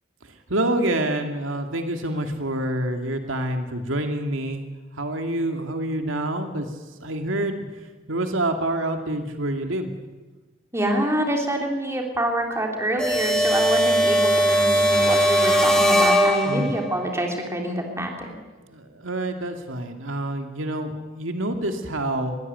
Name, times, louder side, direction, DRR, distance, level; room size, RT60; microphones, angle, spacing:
voice 1, 0.2-4.7 5.0-6.7 7.0-7.6 8.1-9.9 16.5-16.7 18.6-22.4, right 1 dB, 85° right, 5 dB, 2.3 m, -27 dB
voice 2, 10.7-18.3, right 1 dB, 15° right, 1 dB, 3.4 m, -26 dB
sound 1, 13.0-16.9, equal, 5° left, 3.2 m, -19 dB
22.0 x 16.0 x 9.4 m, 1.2 s
head